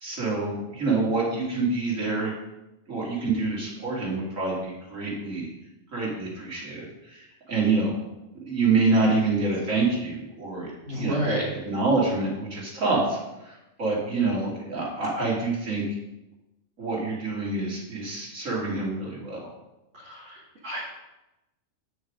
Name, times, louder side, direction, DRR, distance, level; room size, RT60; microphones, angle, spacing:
voice 1, 0.0-2.3 2.9-5.5 5.9-7.9 8.5-11.3 11.6-13.2 13.4-15.8 16.8-19.4, right 3 dB, 85° right, -4 dB, 3.0 m, -26 dB
voice 2, 10.9-11.4 19.9-20.8, right 1 dB, 65° right, -8 dB, 2.4 m, -30 dB
8.7 x 6.5 x 5.1 m, 0.95 s
omnidirectional pair, 1.3 m